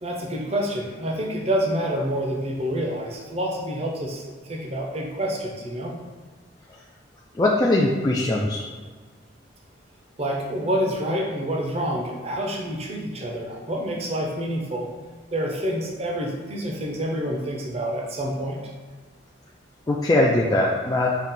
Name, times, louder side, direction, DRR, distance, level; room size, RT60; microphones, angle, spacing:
voice 1, 0.0-5.9 10.2-14.9 15.3-18.6, equal, 30° right, -1 dB, 0.6 m, -27 dB
voice 2, 7.4-8.6 19.9-21.2, left 1 dB, 20° left, -4 dB, 0.3 m, -21 dB
5.6 x 2.4 x 3.6 m, 1.5 s
head